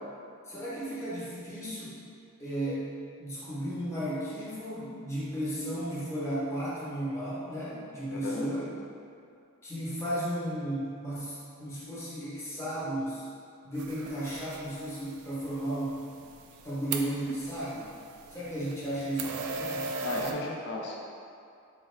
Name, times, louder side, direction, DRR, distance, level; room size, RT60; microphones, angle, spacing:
voice 1, 0.5-2.0 2.4-2.9 3.2-8.7 9.6-13.3 13.6-16.2 16.6-17.9 18.3-20.4, right 1 dB, 10° left, -9 dB, 0.8 m, -34 dB
voice 2, 8.1-8.5 20.0-21.0, left 2 dB, 50° left, -2 dB, 0.5 m, -35 dB
sound 1, 13.8-20.3, right 4 dB, 70° right, 0.3 m, -40 dB
4.5 x 2.3 x 3.2 m, 2.5 s
head